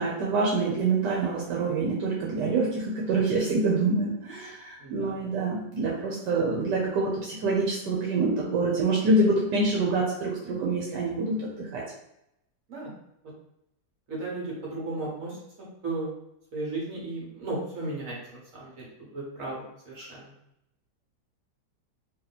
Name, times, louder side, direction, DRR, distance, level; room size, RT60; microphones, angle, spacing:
voice 1, 0.0-11.8, right 3 dB, 85° right, -3 dB, 1.3 m, -26 dB
voice 2, 4.8-5.2 12.7-12.9 14.1-15.4 15.8-16.1 16.5-20.3, right 2 dB, 55° right, -4 dB, 1.5 m, -35 dB
3.0 x 2.9 x 4.0 m, 0.80 s
omnidirectional pair, 1.8 m